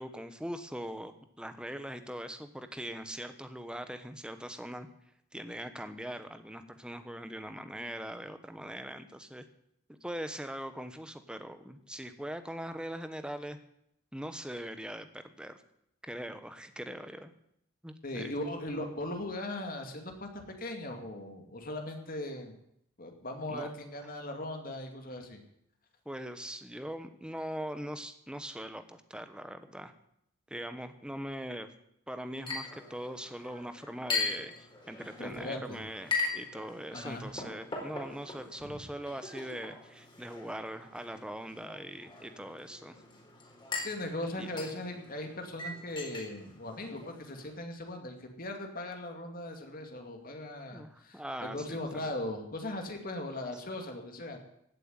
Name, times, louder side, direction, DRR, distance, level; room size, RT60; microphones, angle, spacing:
voice 1, 0.0-4.9 5.3-9.4 9.9-13.6 14.1-15.6 16.0-17.3 17.8-18.3 23.5-23.7 26.0-29.9 30.5-31.7 32.1-43.0 44.4-44.5 50.7-52.2, equal, 5° right, 9 dB, 1.2 m, -41 dB
voice 2, 18.0-20.3 20.6-22.6 23.0-25.4 35.2-35.8 36.9-37.3 38.6-38.8 43.8-54.4, left 1 dB, 45° left, 4 dB, 2.5 m, -39 dB
Chink clink, 32.4-47.5, left 4 dB, 25° left, 4.3 m, -40 dB
16.5 x 8.0 x 9.6 m, 0.74 s
head